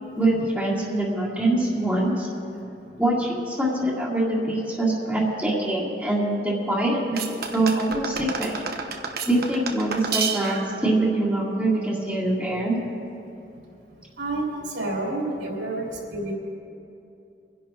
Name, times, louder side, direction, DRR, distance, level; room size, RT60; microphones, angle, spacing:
voice 1, 0.0-2.3 3.0-8.6 9.3-12.8, right 1 dB, 5° right, -11 dB, 2.2 m, -24 dB
sound 1, 7.2-10.8, right 6 dB, 60° right, 1.1 m, -30 dB
voice 2, 14.2-16.3, right 2 dB, 75° right, -3 dB, 3.3 m, -29 dB
26.5 x 11.0 x 3.0 m, 2.7 s
head